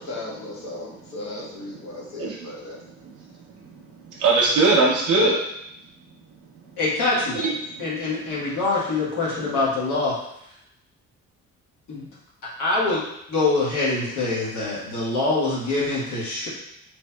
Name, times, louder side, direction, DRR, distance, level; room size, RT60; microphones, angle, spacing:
voice 1, 0.0-2.8, left 2 dB, 65° left, -4 dB, 1.1 m, -36 dB
voice 2, 2.2-2.5 3.0-3.1 4.1-5.4 7.4-7.8, right 3 dB, 80° right, -4 dB, 0.6 m, -20 dB
voice 3, 6.8-7.4 7.8-10.2 11.9-12.1 12.6-13.0 13.3-16.5, left 3 dB, 85° left, -7 dB, 1.3 m, -24 dB
3.1 x 2.9 x 2.2 m, 0.78 s
cardioid pair, 90°, 30 cm